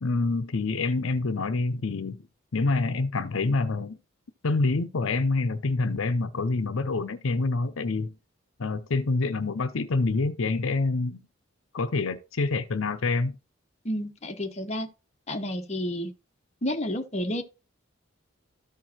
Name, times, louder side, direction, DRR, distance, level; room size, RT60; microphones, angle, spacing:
voice 1, 0.0-2.2 2.5-4.0 4.4-8.1 8.6-11.2 11.7-13.3, left 3 dB, 75° left, 0.7 m, -26 dB
voice 2, 13.8-14.9 15.3-16.1 16.6-17.4, left 1 dB, 30° left, 1.0 m, -30 dB
13.5 x 4.6 x 2.8 m
head